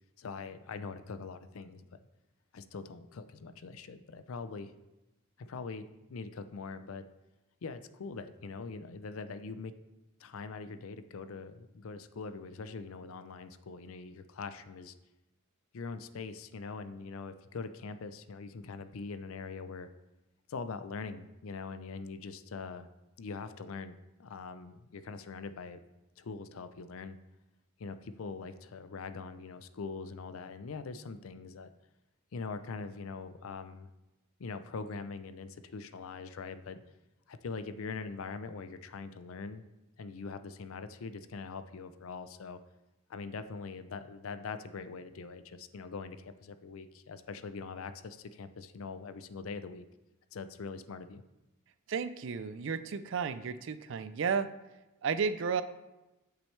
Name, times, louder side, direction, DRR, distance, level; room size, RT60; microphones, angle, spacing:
voice 1, 0.2-2.0 2.5-4.7 5.4-7.0 7.6-9.7 10.2-14.9 15.7-19.9 20.5-22.9 23.2-25.8 26.2-27.2 27.8-31.7 32.3-33.9 34.4-36.8 37.3-39.6 40.0-42.6 43.1-49.9 50.3-51.2, left 4 dB, 75° left, 11 dB, 0.5 m, -42 dB
voice 2, 51.9-54.5 55.0-55.6, right 6 dB, 60° right, 13 dB, 0.4 m, -33 dB
8.5 x 6.2 x 3.2 m, 1.0 s
head